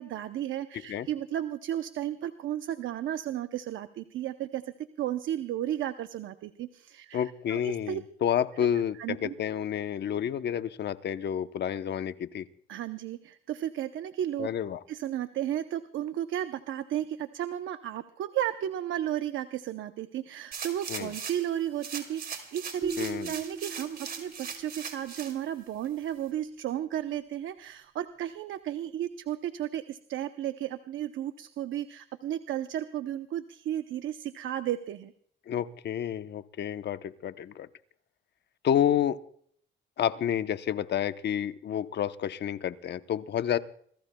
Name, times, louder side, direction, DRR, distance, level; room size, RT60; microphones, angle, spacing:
voice 1, 0.0-8.0 8.6-8.7 9.0-9.3 12.7-14.5 14.9-35.1, right 11 dB, 75° right, 10 dB, 0.8 m, -34 dB
voice 2, 7.1-12.4 14.4-14.8 20.9-21.1 23.0-23.3 35.5-37.7 38.6-39.2 40.0-43.6, left 9 dB, 60° left, 11 dB, 0.9 m, -29 dB
sound 1, 20.5-21.5 21.8-25.3 25.8-25.9, right 6 dB, 55° right, 3.2 m, -39 dB
sound 2, 22.8-25.0, right 3 dB, 30° right, 4.4 m, -40 dB
28.0 x 18.5 x 2.3 m, 0.62 s
cardioid pair, 90°, 20 cm